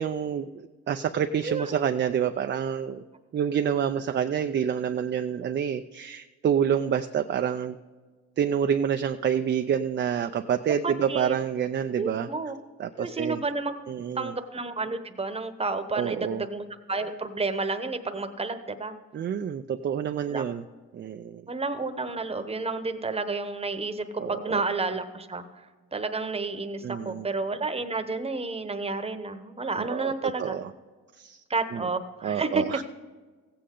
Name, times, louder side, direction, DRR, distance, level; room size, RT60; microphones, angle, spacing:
voice 1, 0.0-3.0 3.3-7.8 8.4-12.3 12.8-13.4 13.9-14.4 15.9-16.5 19.1-20.6 20.9-21.4 24.2-24.6 26.8-27.3 29.8-30.7 31.2-31.4 31.7-31.9 32.2-32.8, right 8 dB, 40° right, 7 dB, 0.4 m, -28 dB
voice 2, 10.8-11.3 12.0-12.5 13.0-13.9 14.1-18.9 20.3-20.4 21.5-25.4 25.9-30.6 31.5-32.6, right 3 dB, 20° right, 8 dB, 1.0 m, -31 dB
15.5 x 8.6 x 3.8 m, 1.4 s
cardioid pair, 90°, 30 cm